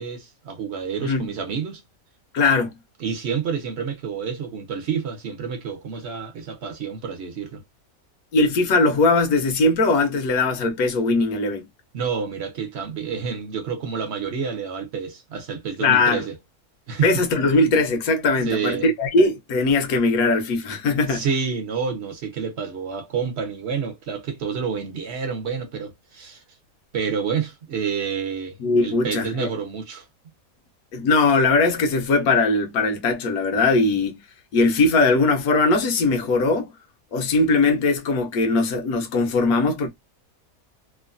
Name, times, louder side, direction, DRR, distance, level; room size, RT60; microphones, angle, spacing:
voice 1, 0.0-1.8 3.0-7.6 11.9-16.3 16.9-17.1 18.4-18.9 21.0-26.4 26.9-30.0, right 6 dB, 55° right, 0.9 m, -29 dB
voice 2, 2.3-2.7 8.3-11.7 15.8-16.2 17.0-21.3 28.6-29.5 30.9-34.2 34.5-36.7 37.1-39.9, left 3 dB, 80° left, 1.2 m, -20 dB
3.0 x 2.2 x 2.5 m
omnidirectional pair, 1.5 m